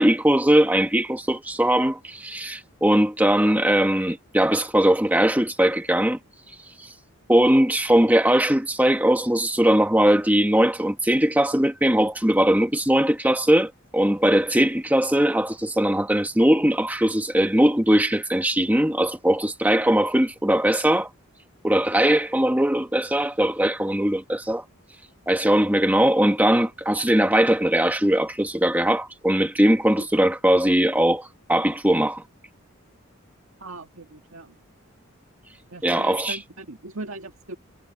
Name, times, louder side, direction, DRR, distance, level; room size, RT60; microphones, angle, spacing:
voice 1, 0.0-6.2 7.3-21.1 21.6-24.6 25.3-32.2 35.8-36.4, right 1 dB, 10° right, 1.2 m, -20 dB
voice 2, 33.6-34.6 35.7-37.6, right 2 dB, 70° right, 1.9 m, -39 dB
head